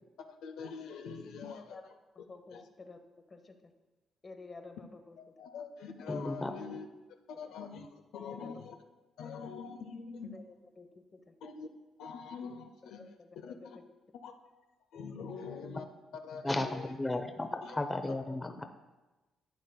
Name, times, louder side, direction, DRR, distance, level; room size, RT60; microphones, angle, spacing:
voice 1, 0.4-1.8 2.5-2.6 5.2-6.9 7.4-8.8 9.2-10.3 11.4-11.7 12.0-13.0 13.4-13.5 14.1-14.3 14.9-15.8 16.2-16.9 17.6-17.7, left 5 dB, 80° left, 6 dB, 0.5 m, -44 dB
voice 2, 2.1-3.6 4.2-5.5 6.4-6.5 7.3-7.5 8.2-8.6 10.2-11.3 12.8-13.8 15.3-15.6 18.3-18.4, left 3 dB, 35° left, 7 dB, 0.8 m, -52 dB
voice 3, 6.1-6.5 16.4-18.7, left 2 dB, 15° left, 6 dB, 0.5 m, -34 dB
11.5 x 8.1 x 2.2 m, 1.1 s
cardioid pair, 90°, 0 cm